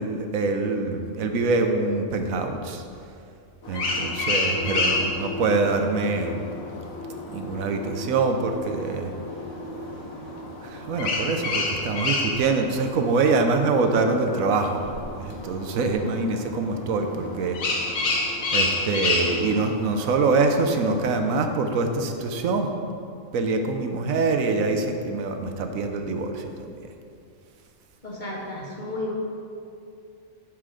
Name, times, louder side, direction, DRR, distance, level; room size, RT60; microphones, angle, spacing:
voice 1, 0.0-2.8 3.7-6.4 7.3-9.1 10.6-14.9 15.2-17.6 17.9-22.7 23.3-26.9, right 3 dB, 85° right, 5 dB, 1.1 m, -25 dB
sound 1, 3.6-21.4, left 2 dB, 80° left, 1.5 m, -30 dB
voice 2, 28.0-29.1, left 1 dB, 35° left, -4 dB, 1.7 m, -32 dB
11.5 x 4.6 x 5.0 m, 2.5 s
omnidirectional pair, 1.4 m